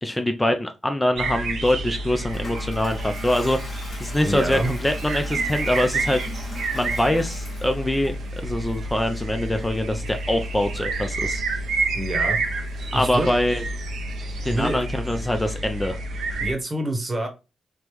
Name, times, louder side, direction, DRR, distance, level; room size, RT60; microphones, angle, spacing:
voice 1, 0.0-3.6 4.0-6.2 6.7-8.1 8.4-11.4 12.9-13.6 14.4-16.0, left 1 dB, 15° left, 6 dB, 0.4 m, -24 dB
sound 1, 1.2-16.5, right 2 dB, 85° right, 0.4 m, -29 dB
Toilet flush, 1.7-14.4, left 1 dB, 50° left, 1.1 m, -43 dB
voice 2, 4.2-4.7 11.9-12.4 12.9-13.3 14.5-14.8 16.4-17.3, right 1 dB, 35° right, 4 dB, 0.9 m, -26 dB
3.3 x 2.0 x 2.9 m, 0.29 s
supercardioid pair, 50°, 0 cm